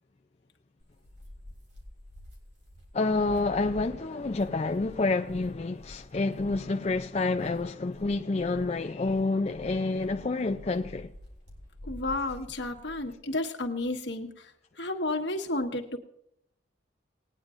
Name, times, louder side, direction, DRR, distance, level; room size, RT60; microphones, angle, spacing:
sound 1, 0.8-13.1, left 1 dB, 75° right, 3.2 m, -49 dB
voice 1, 2.9-11.1, left 3 dB, 35° left, 0.4 m, -28 dB
Boom, 3.3-7.7, left 1 dB, 5° left, 2.0 m, -51 dB
voice 2, 11.8-14.5 14.8-16.0, left 2 dB, 75° left, 1.5 m, -32 dB
20.0 x 9.6 x 2.5 m
head